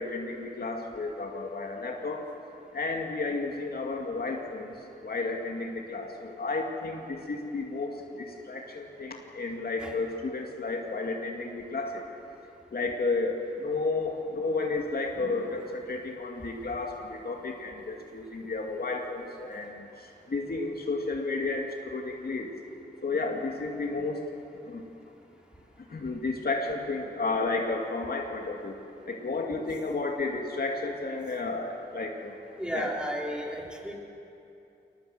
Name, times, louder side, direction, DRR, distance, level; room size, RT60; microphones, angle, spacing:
voice 1, 0.0-2.2 2.7-4.7 5.0-12.0 12.7-22.5 23.0-24.2 24.7-24.8 25.9-28.8 29.1-32.3 32.7-32.9, left 3 dB, 55° left, 1 dB, 2.4 m, -32 dB
voice 2, 32.6-33.9, equal, 5° right, -1 dB, 3.8 m, -34 dB
21.5 x 19.0 x 7.7 m, 2.7 s
cardioid pair, 55°, 18 cm